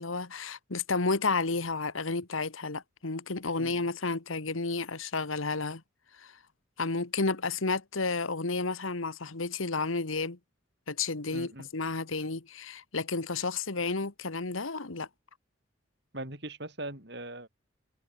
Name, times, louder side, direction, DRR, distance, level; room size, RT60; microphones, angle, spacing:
voice 1, 0.0-5.8 6.2-6.3 6.8-10.4 10.9-15.1, left 3 dB, 85° left, 1.6 m, -31 dB
voice 2, 11.3-11.7 16.1-17.5, right 1 dB, 55° right, 7.8 m, -40 dB
head